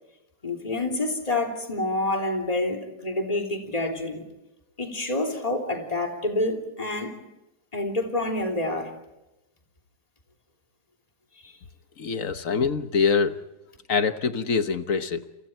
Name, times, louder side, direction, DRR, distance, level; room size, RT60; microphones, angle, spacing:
voice 1, 0.4-4.2 4.8-7.2 7.7-8.9 11.4-11.5, left 2 dB, 20° left, 2 dB, 3.4 m, -28 dB
voice 2, 12.0-13.4 13.9-15.2, left 5 dB, 55° left, 10 dB, 1.4 m, -24 dB
29.5 x 28.0 x 4.4 m, 0.93 s
omnidirectional pair, 1.7 m